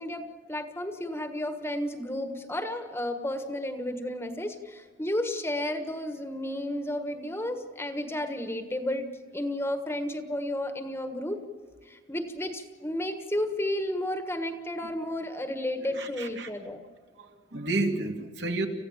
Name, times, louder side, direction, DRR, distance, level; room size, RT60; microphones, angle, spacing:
voice 1, 0.0-11.4 11.8-16.8, left 1 dB, 10° left, 7 dB, 1.4 m, -32 dB
voice 2, 15.8-16.5 17.2-18.7, right 2 dB, 65° right, 3 dB, 2.4 m, -31 dB
27.5 x 15.5 x 7.4 m, 1.5 s
head